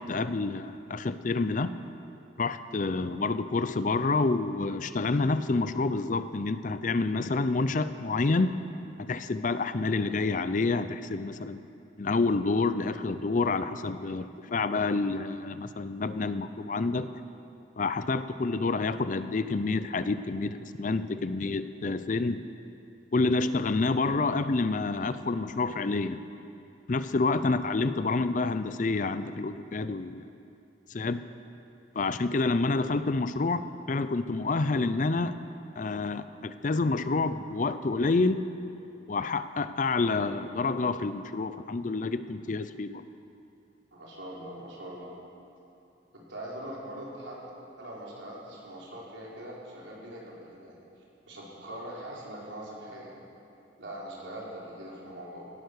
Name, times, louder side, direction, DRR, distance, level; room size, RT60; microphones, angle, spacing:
voice 1, 0.0-1.7 2.4-8.6 9.0-11.6 12.0-17.1 17.8-22.4 23.1-26.2 26.9-30.3 30.9-31.2 31.9-35.4 35.8-38.4 39.1-43.0, left 3 dB, 40° left, 12 dB, 0.5 m, -28 dB
voice 2, 43.9-45.1 46.1-47.4 47.8-50.8 51.3-53.1 53.8-55.5, right 1 dB, 75° right, -5 dB, 4.1 m, -42 dB
17.0 x 11.5 x 6.5 m, 2.7 s
head